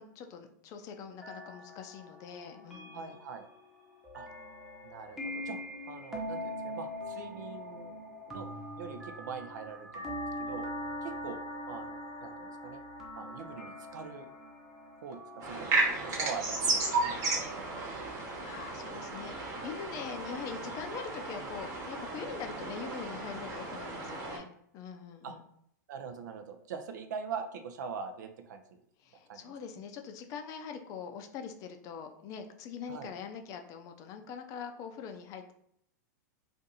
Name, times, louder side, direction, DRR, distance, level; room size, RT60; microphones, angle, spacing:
voice 1, 0.0-3.2 18.1-24.5 24.7-25.4 29.0-35.5, left 6 dB, 35° left, 6 dB, 0.4 m, -43 dB
sound 1, 1.2-17.9, left 1 dB, 5° right, 0.8 m, -43 dB
voice 2, 2.9-3.5 4.1-4.3 4.8-5.6 5.9-8.0 8.3-10.7 11.0-11.4 11.7-12.8 13.2-14.3 15.0-17.8 25.2-25.3 25.9-28.6 29.3-29.5 32.9-33.1, right 6 dB, 75° right, 7 dB, 0.5 m, -43 dB
sound 2, 15.4-24.4, right 3 dB, 35° right, 1.1 m, -34 dB
2.5 x 2.5 x 4.0 m, 0.70 s
hypercardioid pair, 130°, 10 cm